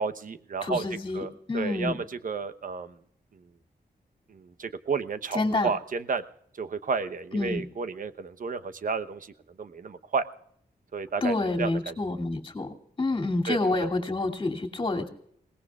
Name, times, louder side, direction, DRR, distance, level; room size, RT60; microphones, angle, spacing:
voice 1, 0.0-0.8 1.1-3.0 3.3-3.5 4.3-6.2 6.5-10.2 10.9-11.9 13.5-13.9, right 5 dB, 55° right, 11 dB, 1.0 m, -32 dB
voice 2, 0.6-1.9 5.3-5.7 7.3-7.6 11.2-15.1, left 2 dB, 30° left, 1 dB, 2.8 m, -28 dB
28.0 x 18.5 x 2.4 m, 0.68 s
wide cardioid pair, 130°, 16 cm